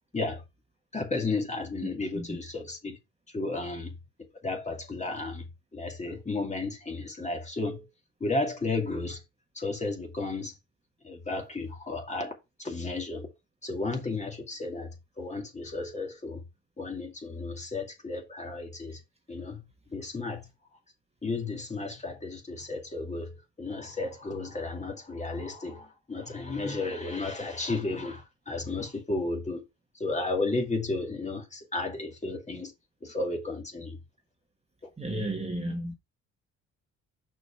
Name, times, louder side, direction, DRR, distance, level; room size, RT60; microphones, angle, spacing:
voice 1, 0.9-3.0 3.3-4.0 4.4-5.4 5.7-7.9 8.2-9.2 9.5-10.6 11.0-13.3 13.6-16.4 16.8-19.0 19.3-20.5 21.2-29.6 29.9-32.7 33.0-34.0, left 3 dB, 25° left, 2.5 m, -33 dB
voice 2, 1.8-2.2 35.0-35.9, right 1 dB, 20° right, 1.6 m, -33 dB
6.2 x 5.3 x 4.3 m
cardioid pair, 90°, 30 cm